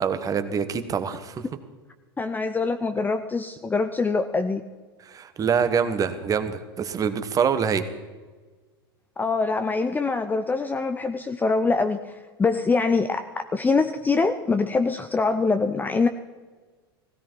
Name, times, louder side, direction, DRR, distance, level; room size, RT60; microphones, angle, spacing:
voice 1, 0.0-1.4 5.1-7.9, right 6 dB, 25° right, 10 dB, 1.3 m, -25 dB
voice 2, 2.2-4.6 9.2-16.1, left 4 dB, 15° left, 8 dB, 0.7 m, -24 dB
16.5 x 16.0 x 4.6 m, 1.4 s
hypercardioid pair, 95°, 13 cm